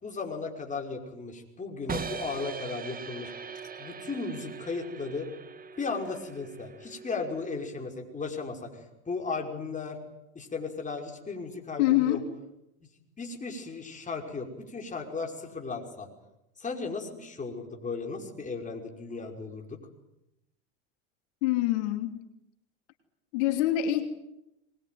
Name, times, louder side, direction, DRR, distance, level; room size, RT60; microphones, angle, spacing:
voice 1, 0.0-3.3 3.8-5.3 5.8-10.0 10.3-12.2 13.2-16.1 16.6-19.8, left 4 dB, 20° left, 2 dB, 5.5 m, -36 dB
sound 1, 1.9-7.9, right 5 dB, 25° right, 1.9 m, -41 dB
voice 2, 11.8-12.3 21.4-22.2 23.3-24.1, left 13 dB, 75° left, 6 dB, 3.1 m, -25 dB
24.0 x 21.0 x 9.4 m, 0.87 s
supercardioid pair, 100°, 36 cm